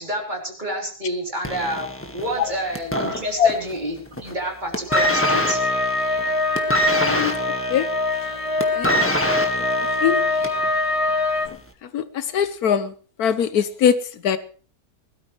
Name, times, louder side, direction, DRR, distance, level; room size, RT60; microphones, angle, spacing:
voice 1, 0.0-5.6, equal, 30° right, 0 dB, 3.8 m, -29 dB
sound 1, 1.4-3.8 4.1-4.4 4.7-10.7 11.5-11.6, equal, 10° left, 1.6 m, -25 dB
sound 2, 4.9-11.5, left 2 dB, 25° left, 0.9 m, -23 dB
voice 2, 6.9-7.3 7.7-7.9 8.8-9.1 10.0-10.2 11.9-12.9 13.2-13.9 14.2-14.4, left 8 dB, 85° left, 13 dB, 1.4 m, -21 dB
20.5 x 13.5 x 3.3 m, 0.42 s
omnidirectional pair, 1.6 m